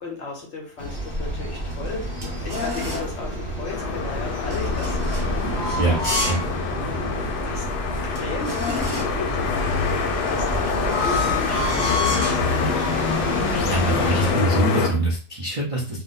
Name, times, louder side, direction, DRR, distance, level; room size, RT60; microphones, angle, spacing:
voice 1, 0.0-5.7 6.8-7.0 7.4-7.7 8.0-9.8 10.3-13.3, left 3 dB, 55° left, -1 dB, 0.9 m, -35 dB
sound 1, 0.8-14.3, equal, 10° left, 0.9 m, -29 dB
sound 2, 1.5-3.2 4.4-6.5 6.9-7.0 7.6-7.7 7.9-9.3 10.2-12.5 13.1-13.4 13.7-15.0, left 2 dB, 20° right, 0.6 m, -30 dB
sound 3, 3.7-14.9, left 6 dB, 75° left, 1.1 m, -26 dB
voice 2, 13.5-16.0, right 1 dB, 55° right, -5 dB, 0.3 m, -23 dB
2.8 x 2.1 x 3.9 m, 0.40 s
omnidirectional pair, 1.7 m